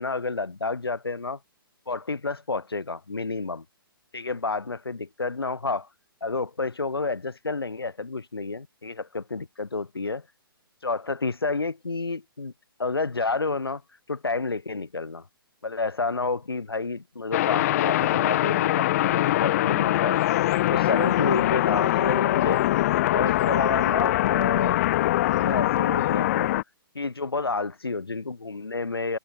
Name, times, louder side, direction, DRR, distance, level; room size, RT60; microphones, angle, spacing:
voice 1, 0.0-1.4 1.9-3.6 4.1-5.9 6.2-10.2 10.8-12.5 12.8-13.8 14.1-15.2 15.6-20.2 20.7-22.6 23.1-24.8 25.3-26.5 26.9-29.2, left 3 dB, 85° left, 7.6 m, -30 dB
sound 1, 17.3-26.6, left 15 dB, 40° left, 2.2 m, -23 dB
figure-of-eight pair, 130°, 12 cm